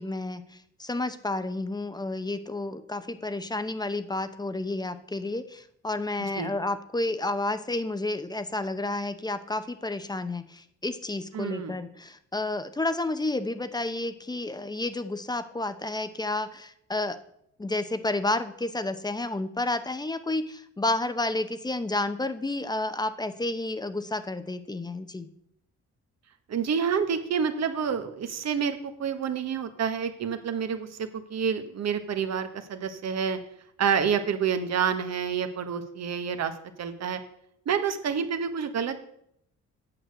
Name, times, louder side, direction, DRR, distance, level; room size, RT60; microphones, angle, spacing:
voice 1, 0.0-17.2 17.6-25.3, left 2 dB, 15° left, 11 dB, 0.8 m, -31 dB
voice 2, 11.3-11.8 26.5-33.4 33.8-36.5 36.8-37.2 37.6-39.0, right 7 dB, 60° right, 8 dB, 1.3 m, -28 dB
9.0 x 6.5 x 6.5 m, 0.71 s
cardioid pair, 90°, 30 cm